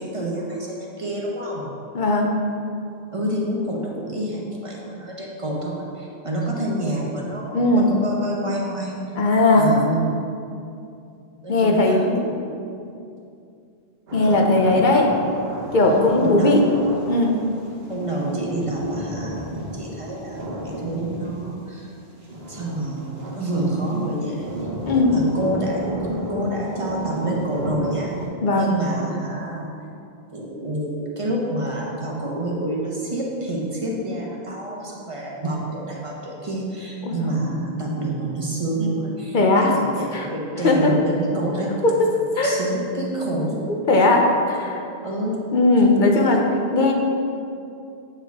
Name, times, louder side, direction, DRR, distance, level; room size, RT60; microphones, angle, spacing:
voice 1, 0.0-1.7 3.1-9.0 9.5-10.3 11.4-12.3 16.2-16.8 17.9-21.9 22.5-23.1 23.3-24.5 24.9-25.9 26.3-28.1 28.5-29.7 30.3-41.7 42.4-43.7 45.0-45.5 46.2-46.4, right 1 dB, 30° right, -2 dB, 1.0 m, -28 dB
voice 2, 1.9-2.4 7.5-7.9 9.2-9.7 11.5-12.2 14.1-15.1 15.7-16.6 17.1-17.4 24.9-25.1 28.4-28.7 37.1-37.3 39.3-39.7 40.1-40.3 40.6-40.9 41.8-41.9 42.4-42.6 43.7-44.8 45.5-46.4 46.7-46.9, left 2 dB, 50° left, 1 dB, 0.8 m, -18 dB
sound 1, 14.1-28.3, right 1 dB, 65° right, 1.4 m, -32 dB
8.9 x 4.5 x 3.5 m, 2.6 s
omnidirectional pair, 1.1 m